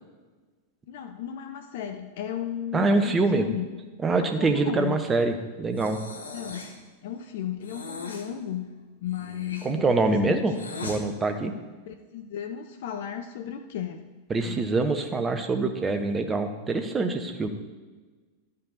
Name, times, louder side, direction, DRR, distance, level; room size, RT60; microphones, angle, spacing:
voice 1, 0.9-3.8 4.2-5.1 6.3-6.8 7.0-8.7 9.0-10.4 11.9-14.0 14.4-14.6, left 9 dB, 55° left, 7 dB, 0.6 m, -35 dB
voice 2, 2.7-3.5 4.0-6.0 9.6-10.5 10.8-11.5 14.3-17.5, right 3 dB, 20° right, 7 dB, 0.9 m, -25 dB
Breathing, 5.8-6.8 7.6-8.3 9.0-11.0, left 3 dB, 70° left, 1.0 m, -39 dB
12.0 x 5.5 x 4.1 m, 1.3 s
figure-of-eight pair, 90°, 0 cm